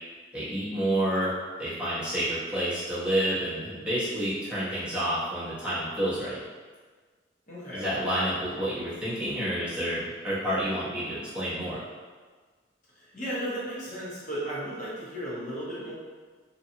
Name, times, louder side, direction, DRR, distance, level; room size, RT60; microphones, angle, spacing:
voice 1, 0.3-6.4 7.7-11.8, right 1 dB, 5° right, -12 dB, 0.9 m, -29 dB
voice 2, 7.5-7.9 13.0-16.0, equal, 40° left, -8 dB, 0.9 m, -35 dB
2.8 x 2.3 x 2.7 m, 1.5 s
head